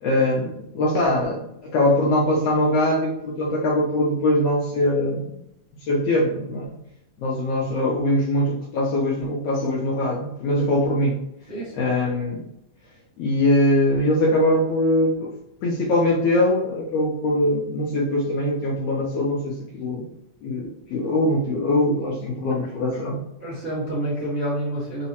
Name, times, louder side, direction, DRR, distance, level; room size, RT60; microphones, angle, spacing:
voice 1, 0.0-5.2 5.9-6.8 7.2-11.2 11.7-12.4 13.2-15.3 15.6-20.0 20.4-23.2, left 1 dB, 80° left, -3 dB, 1.5 m, -22 dB
voice 2, 11.5-11.9 22.5-22.7 23.4-25.1, right 1 dB, 35° right, -10 dB, 0.9 m, -28 dB
4.7 x 2.1 x 2.8 m, 0.80 s
omnidirectional pair, 3.3 m